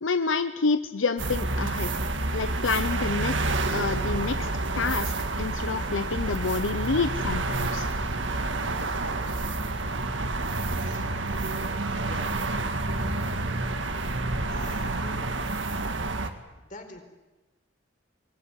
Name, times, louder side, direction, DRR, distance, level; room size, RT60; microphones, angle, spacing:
voice 1, 0.0-1.9 2.3-3.4 3.7-4.5 4.8-5.1 5.4-7.9, left 4 dB, 85° left, 10 dB, 0.8 m, -28 dB
sound 1, 1.2-16.3, right 2 dB, 70° right, 1.9 m, -29 dB
voice 2, 14.4-15.3 16.7-17.0, left 2 dB, 45° left, 4 dB, 4.4 m, -44 dB
24.0 x 19.0 x 9.9 m, 1.1 s
head